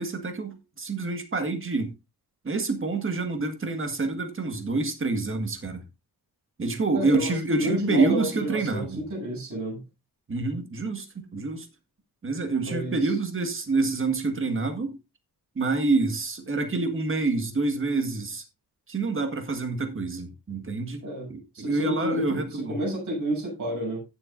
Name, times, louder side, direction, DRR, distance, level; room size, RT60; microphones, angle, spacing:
voice 1, 0.0-1.9 2.4-5.8 6.6-9.0 10.3-11.7 12.2-14.9 15.6-18.4 18.9-21.0 21.3-22.8, right 3 dB, 35° right, 1.7 m, -27 dB
voice 2, 6.9-9.8 12.6-13.0 21.0-21.3 21.5-24.0, equal, 50° right, 7.7 m, -30 dB
16.0 x 7.4 x 2.6 m
wide cardioid pair, 170°, 37 cm